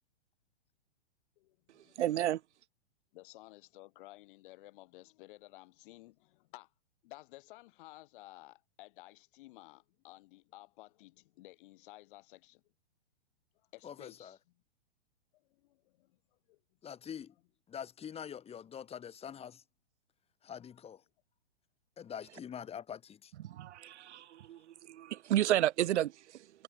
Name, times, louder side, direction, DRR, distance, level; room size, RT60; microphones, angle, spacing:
voice 1, 1.4-1.9 3.1-6.7 7.0-12.6 13.7-14.4 15.3-16.2 16.5-16.6 20.6-20.9 22.3-22.7 24.5-24.6, left 19 dB, 45° left, 3.9 m, -55 dB
voice 2, 2.0-2.4 23.4-24.6 24.9-26.1, right 12 dB, 75° right, 0.5 m, -31 dB
voice 3, 13.8-14.4 16.8-17.3 17.7-19.6 20.4-21.0 22.0-23.3, left 8 dB, 15° left, 2.9 m, -45 dB
hypercardioid pair, 120°, 35 cm